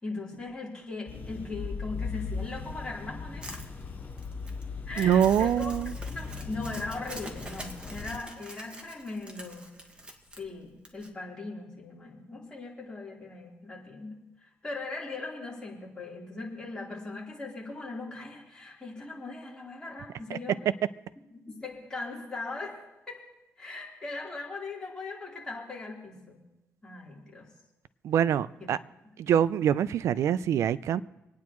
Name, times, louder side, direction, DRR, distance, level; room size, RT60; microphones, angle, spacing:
voice 1, 0.0-3.6 4.9-5.8 6.0-9.7 10.4-14.2 14.6-20.6 21.3-23.2 23.6-26.4 26.8-27.5 28.6-28.7, left 3 dB, 15° left, -5 dB, 3.7 m, -39 dB
sound 1, 1.1-8.2, left 5 dB, 40° left, 5.2 m, -38 dB
Crumpling crinkling, 3.4-11.1, right 1 dB, 20° right, 1.7 m, -46 dB
voice 2, 5.0-5.9 20.3-20.4 28.0-28.8 29.2-31.0, right 9 dB, 75° right, 16 dB, 0.4 m, -24 dB
26.5 x 9.5 x 3.0 m, 0.97 s
cardioid pair, 105°, 5 cm